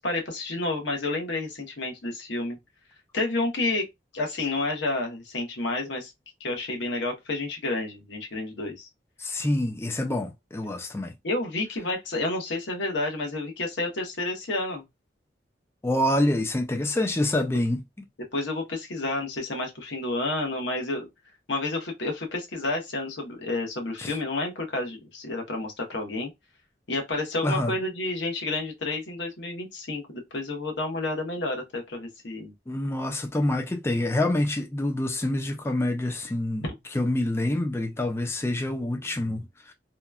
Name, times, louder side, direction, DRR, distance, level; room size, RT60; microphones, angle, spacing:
voice 1, 0.0-2.6 3.1-3.9 4.1-6.1 6.4-8.9 11.2-14.8 18.3-21.0 21.5-26.3 26.9-32.5 36.6-36.7, left 2 dB, 85° left, 1.0 m, -30 dB
voice 2, 9.2-11.1 15.8-17.8 24.0-24.2 27.4-27.7 32.7-36.7 36.9-39.7, left 1 dB, 15° left, 0.3 m, -26 dB
2.9 x 2.2 x 2.3 m
head